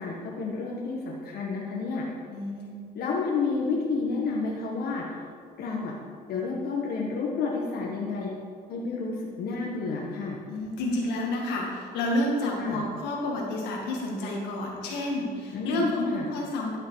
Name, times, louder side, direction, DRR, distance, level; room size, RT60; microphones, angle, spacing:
voice 1, 0.0-2.0 2.9-5.0 5.6-5.9 6.3-8.3 8.7-10.4 12.6-12.8 15.5-15.8 16.1-16.3, left 4 dB, 65° left, -3 dB, 1.4 m, -30 dB
voice 2, 2.3-2.8 10.5-16.8, left 1 dB, 90° left, -1 dB, 1.9 m, -29 dB
11.5 x 5.9 x 4.8 m, 2.2 s
cardioid pair, 110°, 17 cm